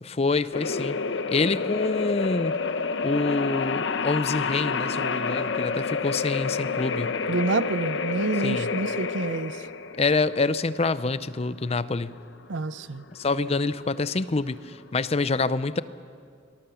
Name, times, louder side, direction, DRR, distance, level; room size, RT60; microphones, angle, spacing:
voice 1, 0.0-1.0 1.3-2.6 3.0-7.2 8.4-8.7 10.0-12.2 13.1-15.8, left 3 dB, 35° left, 0.6 m, -26 dB
sound 1, 0.5-15.1, left 4 dB, 85° left, 0.8 m, -29 dB
voice 2, 7.3-9.6 12.5-13.0, right 3 dB, 85° right, 0.6 m, -28 dB
26.0 x 20.0 x 7.0 m
head